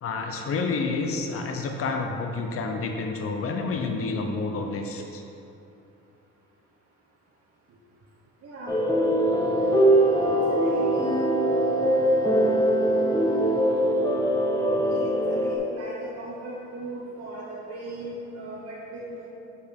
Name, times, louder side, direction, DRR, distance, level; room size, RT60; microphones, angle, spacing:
voice 1, 0.0-5.2, left 3 dB, 50° left, 3 dB, 0.6 m, -29 dB
voice 2, 8.4-8.7 9.9-10.2 10.5-11.2 14.6-19.3, right 2 dB, 50° right, -4 dB, 0.9 m, -36 dB
sound 1, 8.7-15.6, right 1 dB, 10° left, 0.7 m, -22 dB
6.9 x 4.9 x 3.5 m, 2.8 s
cardioid pair, 90°, 30 cm